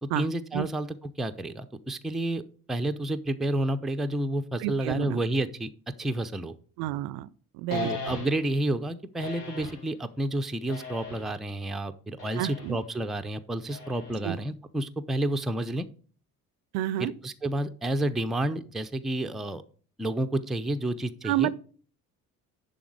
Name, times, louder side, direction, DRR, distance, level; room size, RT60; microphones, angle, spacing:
voice 1, 0.0-2.4 2.7-5.7 6.0-6.5 7.7-15.9 17.0-19.6 20.0-21.5, right 1 dB, ahead, 0.5 m, -30 dB
voice 2, 4.6-5.2 6.8-7.3 7.5-7.9 12.4-12.8 14.2-14.4 16.7-17.1 21.2-21.6, right 14 dB, 55° right, 0.5 m, -29 dB
sound 1, 7.7-8.6 9.2-9.9 10.7-11.4 12.2-12.8 13.7-14.4, left 3 dB, 85° left, 1.2 m, -38 dB
11.0 x 3.8 x 4.8 m
figure-of-eight pair, 50°, 45 cm